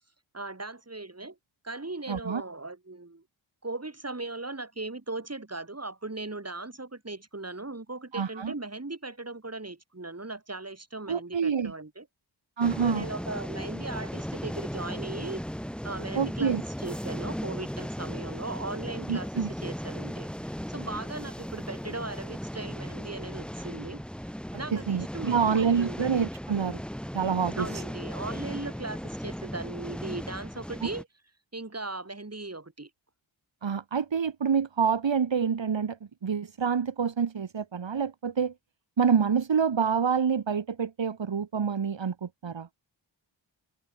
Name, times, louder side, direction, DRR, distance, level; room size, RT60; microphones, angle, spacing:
voice 1, 0.3-1.4 1.6-3.2 3.6-12.1 12.8-15.4 15.8-24.0 24.6-26.0 27.5-31.1 31.5-32.9, right 2 dB, 30° right, 7.8 m, -38 dB
voice 2, 2.1-2.4 8.1-8.5 11.1-11.7 12.6-13.1 16.2-16.6 19.1-19.5 24.7-26.8 27.1-27.8 30.8-30.9 33.6-38.5 39.0-42.7, right 6 dB, 70° right, 2.1 m, -27 dB
sound 1, 12.6-31.0, equal, ahead, 4.0 m, -37 dB
wide cardioid pair, 75°, 47 cm